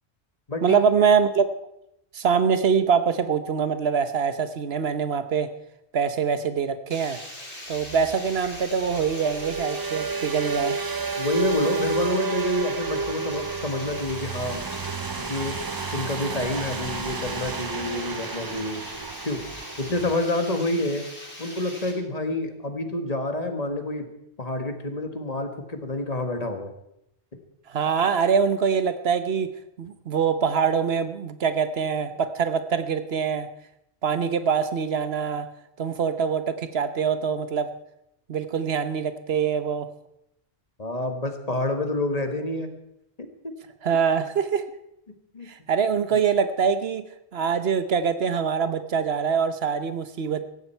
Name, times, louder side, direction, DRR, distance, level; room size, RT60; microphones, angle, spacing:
voice 1, 0.6-1.5 2.1-5.5 5.9-7.2 7.7-10.8 27.7-29.5 29.8-33.5 34.0-35.5 35.8-37.7 38.3-39.9 43.8-44.7 45.5-47.0 47.3-50.5, right 6 dB, 75° right, 11 dB, 1.2 m, -24 dB
Water, 6.9-21.9, left 1 dB, 55° left, 4.1 m, -41 dB
sound 1, 7.8-20.2, right 4 dB, 30° right, 0.4 m, -31 dB
voice 2, 11.2-14.6 15.2-15.6 15.9-18.8 19.2-19.4 19.8-21.0 21.4-24.1 24.4-26.7 40.8-42.7 43.4-43.5 45.3-45.5, left 2 dB, 40° left, 6 dB, 1.7 m, -28 dB
16.5 x 14.5 x 4.5 m, 0.81 s
omnidirectional pair, 1.1 m